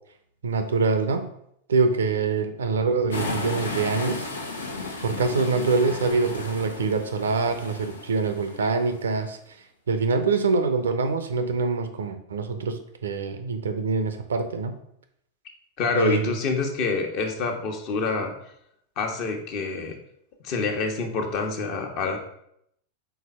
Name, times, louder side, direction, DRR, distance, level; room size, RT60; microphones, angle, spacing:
voice 1, 0.4-1.3 1.7-4.3 5.0-9.4 9.9-14.8 15.9-16.3, right 4 dB, 65° right, 8 dB, 0.7 m, -25 dB
sound 1, 3.1-9.0, left 3 dB, 75° left, 0.9 m, -34 dB
voice 2, 15.8-18.3 19.0-20.0 20.4-22.2, left 4 dB, 40° left, 3 dB, 1.2 m, -27 dB
4.7 x 4.0 x 5.6 m, 0.73 s
figure-of-eight pair, 90°, 0 cm